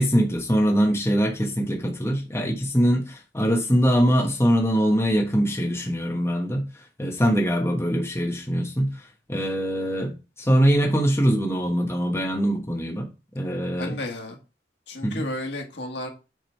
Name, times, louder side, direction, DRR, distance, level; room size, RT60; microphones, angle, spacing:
voice 1, 0.0-6.7 7.0-8.9 9.3-13.1 13.3-14.0 15.0-15.3, equal, 15° left, 1.4 m, -22 dB
voice 2, 13.8-14.4 14.9-16.1, left 1 dB, 70° left, 1.7 m, -32 dB
7.5 x 3.7 x 4.6 m
head